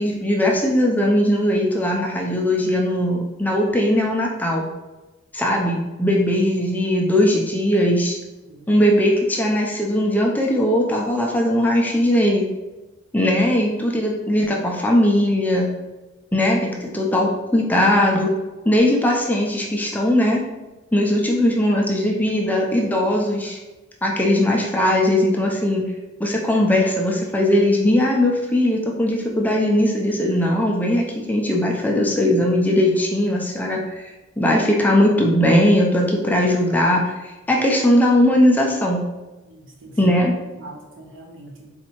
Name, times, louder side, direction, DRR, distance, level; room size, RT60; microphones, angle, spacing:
voice 1, 0.0-4.7 5.3-8.2 8.7-12.5 13.1-15.7 16.3-18.3 18.7-20.4 20.9-23.6 24.0-25.9 26.2-34.1 34.4-39.1 40.0-40.3, left 1 dB, 10° left, -1 dB, 0.4 m, -19 dB
voice 2, 39.5-40.1 40.6-41.7, right 2 dB, 75° right, -2 dB, 0.9 m, -42 dB
4.1 x 2.7 x 2.9 m, 1.1 s
head